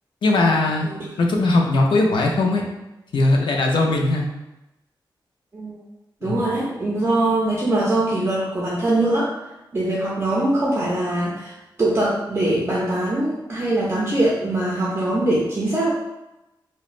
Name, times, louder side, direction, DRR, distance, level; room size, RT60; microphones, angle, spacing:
voice 1, 0.2-0.9 1.2-2.6 3.1-4.3 6.2-6.4, left 2 dB, 75° left, 1 dB, 0.4 m, -19 dB
voice 2, 0.8-1.2 5.5-5.8 6.2-9.3 9.7-11.5 11.8-15.9, right 1 dB, 30° right, -5 dB, 0.5 m, -22 dB
3.0 x 2.1 x 2.4 m, 0.96 s
wide cardioid pair, 100°, 8 cm